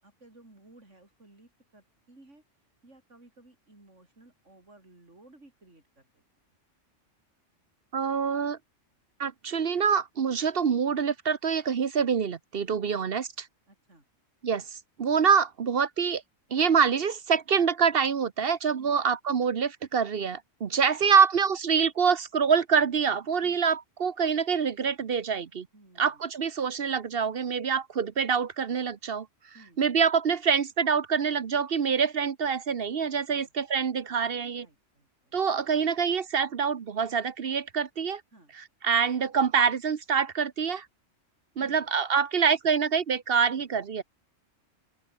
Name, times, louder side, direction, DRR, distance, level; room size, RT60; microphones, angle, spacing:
voice 1, 0.0-2.4 2.8-6.2 13.7-14.1 18.8-19.0 20.6-21.0 23.4-23.6 25.7-26.3 29.5-29.8 33.3-33.5 34.5-35.6 38.3-38.5 41.6-41.8 43.6-43.8, right 2 dB, 65° right, 6.3 m, -57 dB
voice 2, 7.9-8.6 9.2-13.5 14.4-16.2 16.5-25.7 26.0-29.3 29.8-34.7 35.3-38.2 38.8-40.9 41.6-44.0, right 6 dB, 50° right, 1.1 m, -26 dB
open air
omnidirectional pair, 1.3 m